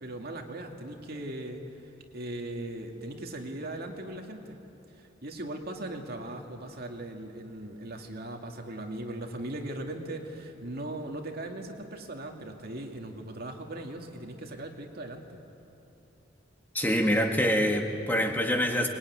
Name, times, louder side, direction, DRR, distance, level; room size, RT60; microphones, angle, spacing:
voice 1, 0.0-1.6 2.1-4.6 5.0-15.4, right 1 dB, 55° right, 2 dB, 2.3 m, -39 dB
voice 2, 16.7-18.9, equal, 10° left, 3 dB, 1.7 m, -25 dB
25.0 x 21.0 x 9.6 m, 2.9 s
head